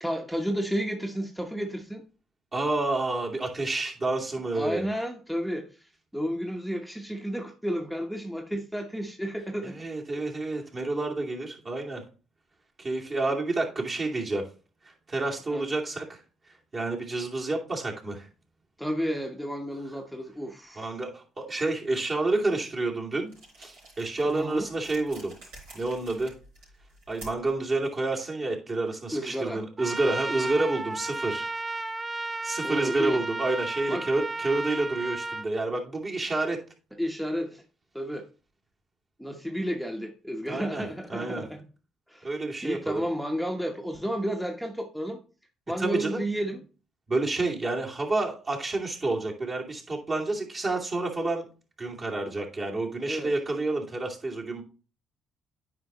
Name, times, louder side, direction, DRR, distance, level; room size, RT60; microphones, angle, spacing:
voice 1, 0.0-2.0 4.5-9.8 15.5-15.6 18.8-20.9 24.3-24.7 29.1-29.6 32.6-33.2 33.9-34.1 37.0-37.6 37.9-38.3 39.2-41.6 42.1-42.3 42.6-45.2 45.7-46.6 53.0-53.3, equal, ahead, 2 dB, 1.0 m, -32 dB
voice 2, 2.5-4.8 9.6-12.0 12.8-14.5 15.1-16.2 16.7-18.3 20.8-23.3 23.6-25.3 25.7-26.3 27.1-31.4 32.4-36.6 40.5-40.8 41.1-41.4 42.2-43.0 45.8-46.2 47.1-51.5 51.8-54.6, right 2 dB, 40° right, -2 dB, 2.6 m, -29 dB
sound 1, 23.3-27.6, right 1 dB, 85° right, 4.4 m, -49 dB
Trumpet, 29.8-35.5, right 2 dB, 20° right, 0.4 m, -33 dB
9.4 x 4.9 x 3.0 m, 0.35 s
hypercardioid pair, 60°, 0 cm